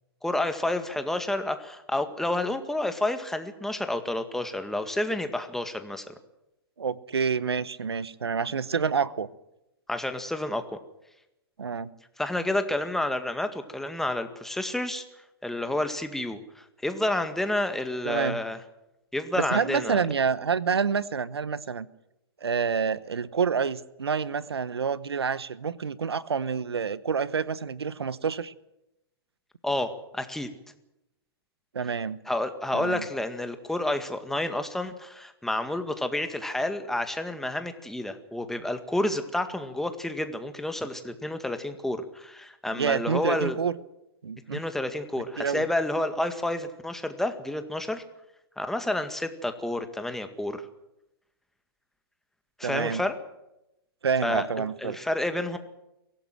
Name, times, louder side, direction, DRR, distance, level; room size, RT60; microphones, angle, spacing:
voice 1, 0.2-6.1 9.9-10.7 12.2-15.0 15.4-18.6 19.1-20.0 29.6-30.5 32.3-43.6 44.5-48.0 48.6-50.6 52.6-53.2 54.2-55.6, left 1 dB, 5° left, 8 dB, 1.9 m, -30 dB
voice 2, 6.8-9.3 11.6-11.9 18.0-18.4 19.4-21.9 22.4-28.5 31.7-32.2 32.7-33.0 42.8-43.7 44.2-44.6 45.4-45.6 52.6-53.0 54.0-55.0, right 6 dB, 85° right, 18 dB, 1.0 m, -28 dB
23.0 x 17.5 x 7.7 m, 0.89 s
hypercardioid pair, 120°, 13 cm